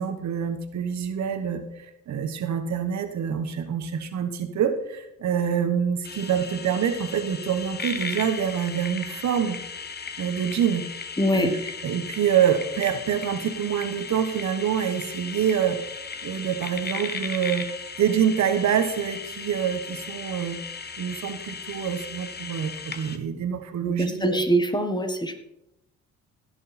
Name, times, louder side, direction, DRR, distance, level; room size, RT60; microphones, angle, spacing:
voice 1, 0.0-9.6 10.2-10.8 11.3-11.5 11.8-17.6 18.0-20.6 21.0-24.4, right 8 dB, 65° right, 8 dB, 1.3 m, -26 dB
sound 1, 6.0-23.2, left 5 dB, 35° left, 1.2 m, -36 dB
voice 2, 11.2-11.7 23.8-25.4, right 1 dB, 15° left, 7 dB, 1.5 m, -24 dB
17.0 x 6.6 x 4.3 m, 0.82 s
cardioid pair, 90°, 30 cm